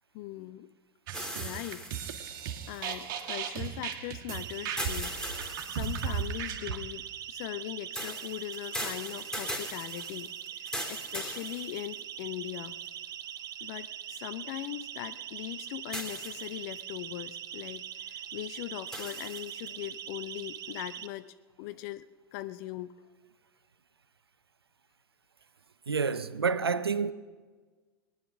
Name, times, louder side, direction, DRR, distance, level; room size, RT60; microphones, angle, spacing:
voice 1, 0.1-0.7 1.4-1.8 2.7-5.1 5.7-12.7 13.6-22.9, left 15 dB, 45° left, 0.6 m, -40 dB
sound 1, 1.1-3.3 4.8-6.4 8.0-12.2 12.9-13.0 15.9-16.7 18.9-19.7, equal, 5° left, 3.1 m, -39 dB
sound 2, 1.1-6.8, right 7 dB, 55° right, 1.7 m, -36 dB
Siren, 4.3-21.1, right 10 dB, 30° right, 0.9 m, -42 dB
voice 2, 25.9-27.1, right 5 dB, 80° right, 0.7 m, -28 dB
22.0 x 9.6 x 6.2 m
figure-of-eight pair, 90°, 13 cm